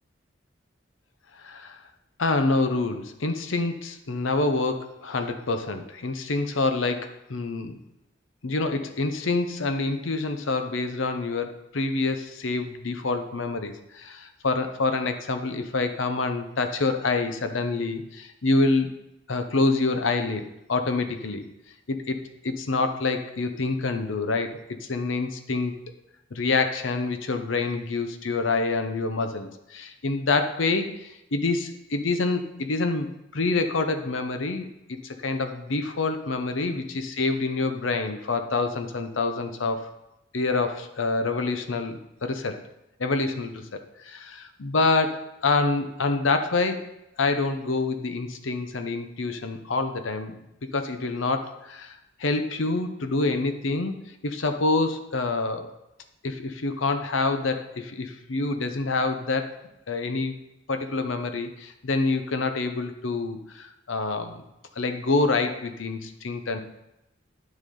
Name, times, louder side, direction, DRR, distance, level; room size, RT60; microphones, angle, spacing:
voice 1, 1.4-1.8 2.2-7.8 8.4-18.9 19.3-21.4 21.9-25.7 26.3-39.9 40.3-42.6 43.0-43.8 44.0-46.9 47.2-50.4 50.7-53.9 54.2-55.7 56.2-59.5 59.9-60.3 60.7-64.4 64.8-66.6, left 3 dB, 80° left, 8 dB, 0.8 m, -27 dB
10.5 x 6.4 x 3.8 m, 0.89 s
head